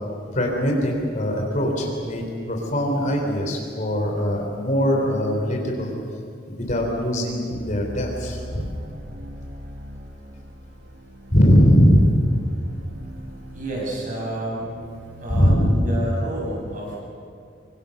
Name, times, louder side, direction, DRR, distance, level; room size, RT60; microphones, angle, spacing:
voice 1, 0.3-5.9 6.5-8.7 11.3-12.1 15.3-15.8, equal, 40° left, 1 dB, 3.9 m, -21 dB
sound 1, 7.5-15.5, equal, 60° right, 2.2 m, -40 dB
voice 2, 13.5-14.7 15.2-17.0, right 1 dB, 45° right, -3 dB, 7.6 m, -30 dB
26.5 x 24.5 x 6.8 m, 2.4 s
head